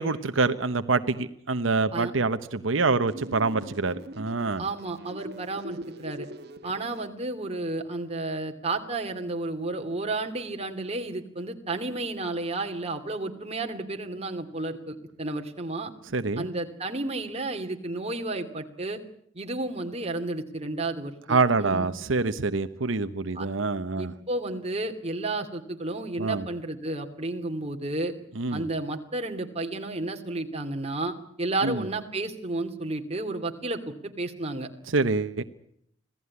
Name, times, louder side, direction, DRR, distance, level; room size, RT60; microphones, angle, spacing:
voice 1, 0.0-4.7 16.1-16.5 21.3-24.1 26.2-26.4 28.4-28.7 31.6-31.9 34.9-35.4, right 3 dB, 85° right, 10 dB, 1.1 m, -26 dB
sound 1, 3.1-7.1, equal, 55° right, 1.7 m, -42 dB
voice 2, 4.6-6.3 6.6-15.9 16.4-19.0 19.3-21.8 23.3-23.5 24.0-28.1 28.5-34.7, right 2 dB, 35° right, 5 dB, 2.5 m, -32 dB
26.5 x 17.0 x 9.7 m, 0.71 s
head